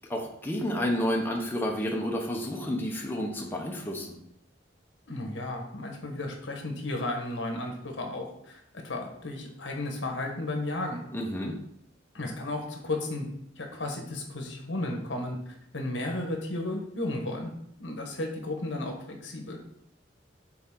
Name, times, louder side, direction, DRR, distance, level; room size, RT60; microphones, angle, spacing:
voice 1, 0.1-4.2 11.1-11.6, equal, 10° left, -1 dB, 0.8 m, -30 dB
voice 2, 5.1-11.0 12.1-13.3 13.6-15.4 15.7-17.5 17.8-19.6, left 2 dB, 70° left, 3 dB, 1.2 m, -34 dB
6.9 x 3.8 x 3.8 m, 0.74 s
head